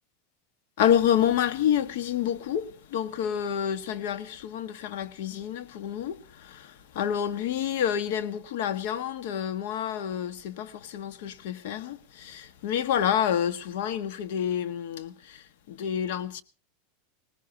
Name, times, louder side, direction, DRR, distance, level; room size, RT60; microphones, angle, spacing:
voice 1, 0.8-16.4, left 9 dB, 70° left, 1.5 m, -28 dB
20.5 x 19.0 x 2.8 m
supercardioid pair, 135°, 0 cm